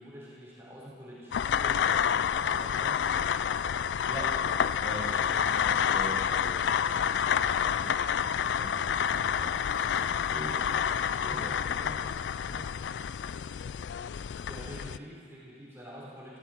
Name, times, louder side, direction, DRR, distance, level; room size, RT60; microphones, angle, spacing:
voice 1, 0.0-3.0 14.5-16.4, equal, 15° right, -7 dB, 4.1 m, -46 dB
sound 1, 1.3-15.0, left 8 dB, 85° left, 0.3 m, -29 dB
voice 2, 4.8-9.5 9.9-12.6, equal, 30° left, -8 dB, 4.5 m, -43 dB
sound 2, 9.3-13.8, right 3 dB, 70° right, 1.7 m, -59 dB
18.0 x 15.0 x 4.5 m, 2.1 s
head